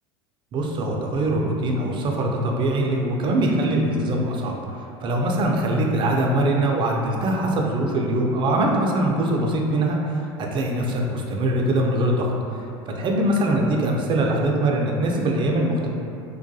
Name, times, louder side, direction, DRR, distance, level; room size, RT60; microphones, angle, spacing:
voice 1, 0.5-4.5 5.0-12.3 12.9-15.9, right 1 dB, 35° right, 0 dB, 0.4 m, -22 dB
2.3 x 2.2 x 2.7 m, 2.6 s
hypercardioid pair, 80°, 14 cm